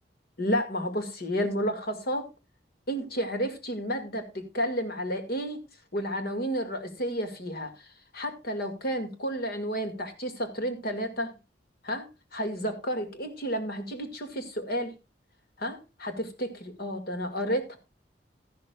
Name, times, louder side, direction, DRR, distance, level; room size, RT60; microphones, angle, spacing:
voice 1, 0.4-2.3 2.9-5.6 5.9-7.9 8.1-11.3 11.8-14.9 15.6-17.8, equal, 60° left, 2.0 m, -31 dB
13.5 x 11.5 x 2.3 m
head